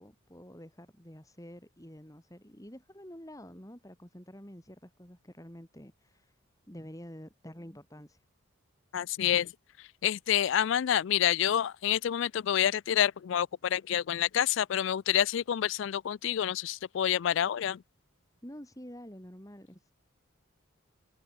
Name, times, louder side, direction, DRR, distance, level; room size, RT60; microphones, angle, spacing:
voice 1, 0.0-6.4 6.7-8.2 18.4-19.9, equal, 15° left, 3.5 m, -48 dB
voice 2, 8.9-9.5 10.0-17.8, left 10 dB, 60° left, 0.3 m, -28 dB
head